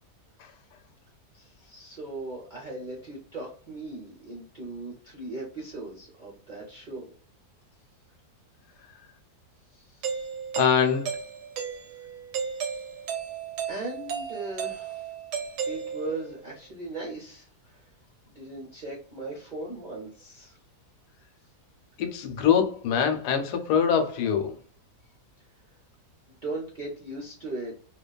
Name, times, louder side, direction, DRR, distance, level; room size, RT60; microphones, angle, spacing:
voice 1, 1.3-7.1 9.7-10.2 13.7-15.1 15.6-17.9 18.3-20.6 26.3-27.7, right 2 dB, 50° right, 0.5 m, -38 dB
Doorbell, 10.0-16.4, right 7 dB, 90° right, 1.2 m, -34 dB
voice 2, 10.6-11.2 22.0-24.6, left 7 dB, 85° left, 1.2 m, -24 dB
2.8 x 2.2 x 2.3 m
omnidirectional pair, 1.7 m